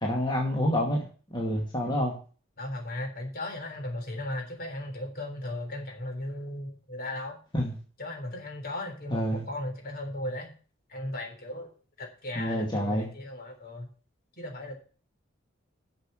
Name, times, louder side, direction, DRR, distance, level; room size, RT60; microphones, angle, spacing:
voice 1, 0.0-1.0 1.3-2.1 7.5-7.7 9.1-9.4 12.4-13.1, equal, 25° left, -2 dB, 2.4 m, -27 dB
voice 2, 2.6-7.4 8.0-10.5 10.9-11.7 12.0-13.9 14.4-14.8, left 1 dB, 50° left, 4 dB, 3.6 m, -36 dB
8.2 x 7.0 x 7.7 m, 0.37 s
head